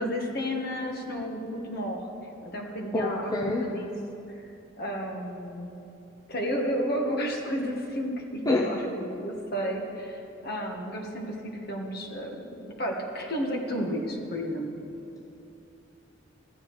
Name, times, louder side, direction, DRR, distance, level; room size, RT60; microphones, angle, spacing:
voice 1, 0.0-2.0 2.4-3.9 4.3-4.5 4.8-5.7 6.3-14.7, equal, 50° left, 1 dB, 1.4 m, -32 dB
voice 2, 2.9-3.7 8.5-8.7, left 2 dB, 15° left, -1 dB, 0.6 m, -26 dB
14.5 x 9.9 x 4.7 m, 2.8 s
head